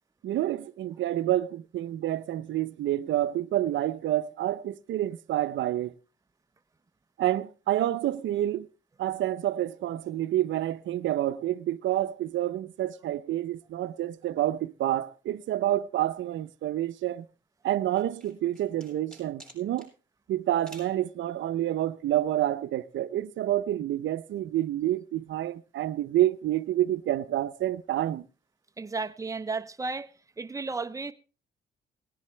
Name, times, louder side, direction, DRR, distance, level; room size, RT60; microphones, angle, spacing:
voice 1, 0.2-6.0 7.2-8.7 9.0-17.3 17.6-19.9 20.3-28.3, right 13 dB, 70° right, 0.7 m, -28 dB
sound 1, 18.0-19.9 20.6-21.0, right 1 dB, 5° left, 7.3 m, -50 dB
voice 2, 28.8-30.1 30.4-31.1, right 4 dB, 15° right, 0.8 m, -33 dB
19.0 x 10.5 x 3.3 m
cardioid pair, 90°, 20 cm